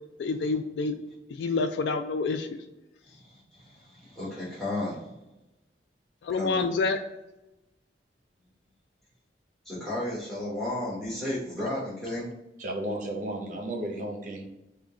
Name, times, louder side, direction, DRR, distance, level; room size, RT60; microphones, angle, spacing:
voice 1, 0.2-0.9 1.4-2.5 6.2-7.0, left 4 dB, 70° left, 0.3 m, -27 dB
voice 2, 3.0-5.1 6.3-6.7 9.6-12.2, left 1 dB, ahead, 1.0 m, -33 dB
voice 3, 12.6-14.5, right 1 dB, 45° right, 0.6 m, -33 dB
3.6 x 2.2 x 3.6 m
head